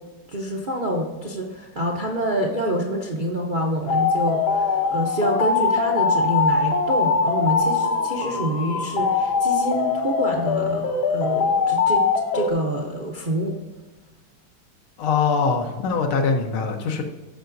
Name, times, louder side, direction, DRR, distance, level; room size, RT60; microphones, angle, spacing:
voice 1, 0.3-12.1 12.3-13.6, right 1 dB, 60° right, 0 dB, 0.5 m, -27 dB
sound 1, 3.9-12.5, left 5 dB, 60° left, 1.2 m, -22 dB
voice 2, 15.0-17.0, left 5 dB, 85° left, 3 dB, 1.8 m, -22 dB
15.0 x 5.7 x 2.6 m, 1.2 s
omnidirectional pair, 2.3 m